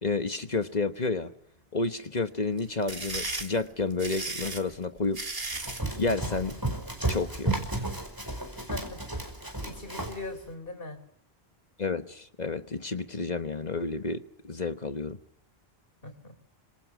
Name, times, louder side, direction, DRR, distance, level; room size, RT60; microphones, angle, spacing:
voice 1, 0.0-1.3 1.7-5.2 6.0-6.6 7.1-7.8 11.8-15.2, left 3 dB, 45° left, 1.4 m, -30 dB
sound 1, 2.6-5.9, right 2 dB, 65° right, 2.8 m, -35 dB
Run, 5.5-10.2, right 2 dB, 20° right, 5.2 m, -33 dB
voice 2, 9.6-11.0 16.0-16.6, left 2 dB, 60° left, 4.2 m, -40 dB
30.0 x 26.5 x 6.0 m
omnidirectional pair, 1.1 m